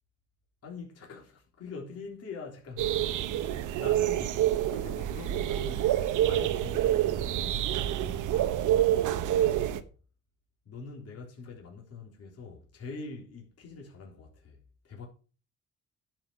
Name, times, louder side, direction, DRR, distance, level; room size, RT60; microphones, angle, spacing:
voice 1, 0.6-6.0 6.2-7.7 9.2-9.9 10.7-14.6 14.8-15.1, left 4 dB, 55° left, 3.6 m, -44 dB
sound 1, 2.8-9.8, right 12 dB, 85° right, 1.0 m, -27 dB
10.5 x 5.8 x 6.3 m
cardioid pair, 90°, 30 cm